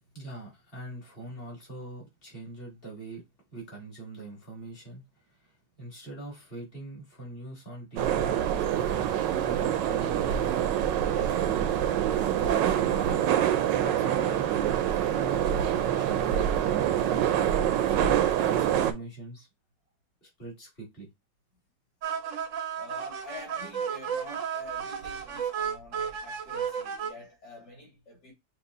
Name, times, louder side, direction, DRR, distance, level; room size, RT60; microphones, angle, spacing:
voice 1, 0.1-3.2 3.5-11.5 12.1-13.3 13.8-14.6 15.1-18.2 18.5-19.5 20.2-21.1 22.0-22.1, right 2 dB, 30° left, 2.6 m, -43 dB
sound 1, 8.0-18.9, right 10 dB, 90° right, 1.3 m, -26 dB
sound 2, 22.0-27.1, right 7 dB, 60° right, 0.9 m, -33 dB
voice 2, 22.7-28.3, left 1 dB, 70° left, 2.3 m, -46 dB
5.8 x 2.6 x 2.6 m
omnidirectional pair, 1.9 m